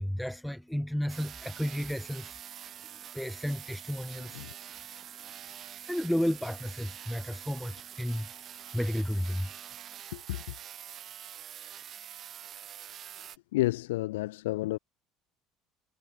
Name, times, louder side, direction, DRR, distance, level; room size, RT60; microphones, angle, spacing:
voice 1, 0.0-2.4 3.1-4.7 5.8-9.5, equal, 5° left, 1.8 m, -33 dB
Big Tesla coil sound cut, 1.1-13.4, right 10 dB, 50° right, 3.8 m, -46 dB
voice 2, 10.1-10.5 12.9-14.8, left 18 dB, 80° left, 1.6 m, -32 dB
hypercardioid pair, 65°, 0 cm